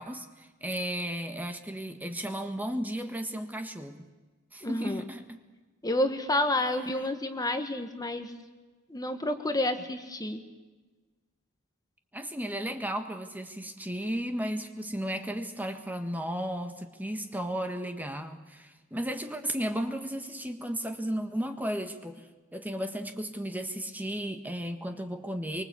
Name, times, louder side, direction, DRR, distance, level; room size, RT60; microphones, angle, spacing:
voice 1, 0.0-4.0 4.5-5.4 12.1-25.6, equal, 10° right, 7 dB, 1.6 m, -34 dB
voice 2, 4.6-5.0 5.8-8.3 8.9-10.4, left 1 dB, 20° left, 7 dB, 1.6 m, -29 dB
24.5 x 24.5 x 8.4 m, 1.2 s
head